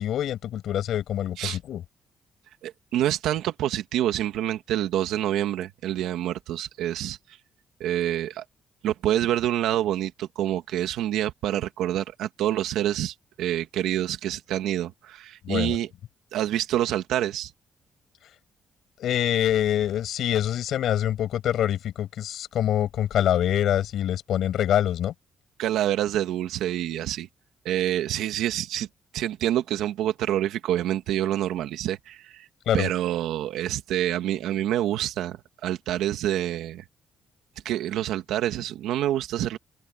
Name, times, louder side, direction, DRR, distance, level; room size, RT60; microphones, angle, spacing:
voice 1, 0.0-1.8 15.4-15.8 19.0-25.1 32.7-32.9, left 11 dB, 75° left, 7.0 m, -25 dB
voice 2, 2.6-7.4 7.8-8.4 8.8-15.9 16.3-17.5 25.6-27.3 27.7-28.9 29.1-32.5 32.7-35.4 35.6-36.8 37.7-39.6, right 12 dB, 90° right, 2.0 m, -27 dB
open air
cardioid pair, 90°, 0 cm